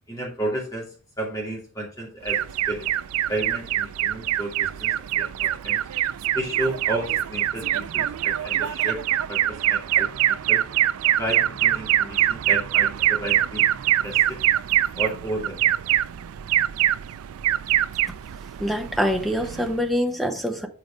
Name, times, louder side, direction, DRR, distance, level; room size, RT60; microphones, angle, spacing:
voice 1, 0.1-0.9 1.2-2.9 3.3-5.8 6.3-9.0 9.3-10.6 11.2-13.6 14.0-14.4 14.9-15.7, right 1 dB, 15° left, -3 dB, 2.4 m, -32 dB
Alarm, 2.3-19.9, right 12 dB, 75° right, 0.4 m, -24 dB
voice 2, 18.6-20.7, equal, ahead, 5 dB, 0.9 m, -25 dB
7.4 x 4.7 x 5.1 m, 0.40 s
head